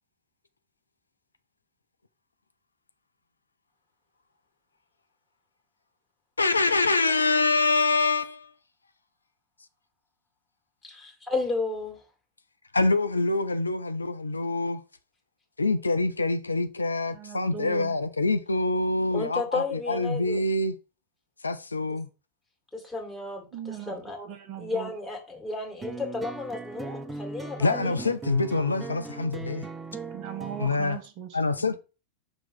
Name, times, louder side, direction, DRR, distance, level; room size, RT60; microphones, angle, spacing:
voice 1, 6.4-8.5 12.7-14.8 15.6-20.7 21.4-22.1 27.6-29.7 30.6-31.0 31.3-31.8, left 3 dB, 80° left, 0.4 m, -25 dB
voice 2, 10.8-12.0 19.1-20.4 22.7-24.2 24.6-28.1, left 3 dB, 10° left, 2.0 m, -33 dB
voice 3, 17.1-18.0 23.5-24.9 30.1-31.8, right 8 dB, 40° right, 0.9 m, -39 dB
sound 1, 25.8-30.9, right 3 dB, 10° right, 0.6 m, -38 dB
6.0 x 3.1 x 5.2 m
figure-of-eight pair, 90°, 0 cm